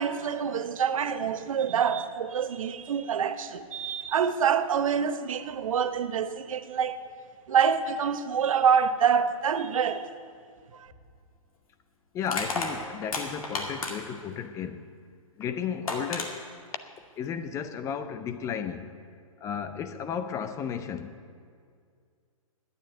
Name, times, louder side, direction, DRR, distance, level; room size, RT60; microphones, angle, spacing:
voice 1, 0.0-7.0 7.5-10.1 10.7-10.9, right 7 dB, 65° right, 0.9 m, -26 dB
Crushing, 10.9-11.0 12.2-14.2 15.4-15.5 15.9-16.3, left 3 dB, 75° left, 2.3 m, -32 dB
voice 2, 12.1-14.8 15.4-16.4 17.2-19.0 19.4-21.1, left 7 dB, 15° left, 0.5 m, -34 dB
10.0 x 9.3 x 9.2 m
hypercardioid pair, 135°, 18 cm